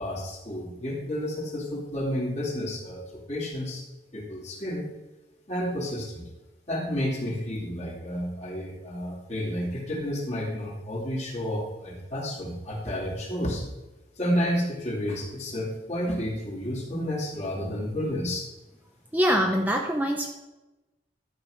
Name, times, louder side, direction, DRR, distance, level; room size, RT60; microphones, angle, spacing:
voice 1, 0.0-3.8 4.1-4.8 5.5-6.2 6.7-13.6 14.2-18.4, equal, 40° left, -3 dB, 2.5 m, -31 dB
voice 2, 19.1-20.3, equal, 10° right, 2 dB, 0.6 m, -24 dB
12.0 x 4.9 x 6.3 m, 1.0 s
head